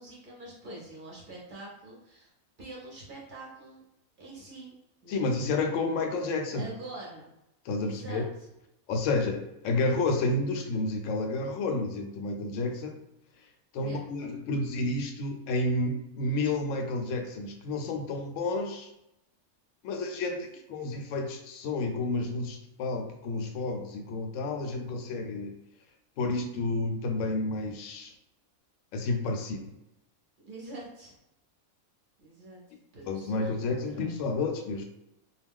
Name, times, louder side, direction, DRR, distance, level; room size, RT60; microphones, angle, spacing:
voice 1, 0.0-2.3 2.6-3.8 4.2-4.7 5.0-5.3 6.5-7.2 7.8-8.2 13.8-14.0 30.4-31.1 32.2-32.6 32.9-34.2, right 2 dB, 45° right, -4 dB, 0.7 m, -45 dB
voice 2, 5.1-6.7 7.6-8.2 8.9-13.0 13.7-18.9 19.8-25.5 26.2-28.1 28.9-29.7 33.0-34.9, left 2 dB, 70° left, 3 dB, 0.8 m, -30 dB
2.4 x 2.1 x 3.5 m, 0.85 s
omnidirectional pair, 1.5 m